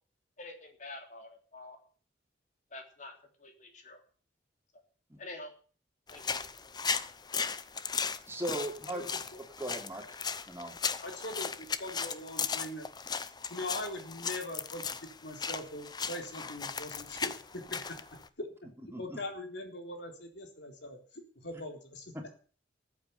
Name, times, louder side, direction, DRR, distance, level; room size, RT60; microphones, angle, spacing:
voice 1, 0.4-1.8 2.7-3.1 3.4-4.0 5.2-5.5 6.1-6.4, left 2 dB, 40° left, 4 dB, 3.4 m, -47 dB
sound 1, 6.1-18.3, left 6 dB, 20° left, 0.8 m, -37 dB
voice 2, 8.3-9.0 9.6-10.0 10.5-10.7 18.9-19.2, right 1 dB, 15° right, 2 dB, 3.3 m, -37 dB
voice 3, 11.0-12.9 13.5-18.0 18.4-18.5 19.0-21.0 21.4-22.1, left 1 dB, 65° left, 4 dB, 3.9 m, -41 dB
14.0 x 8.3 x 9.6 m, 0.42 s
head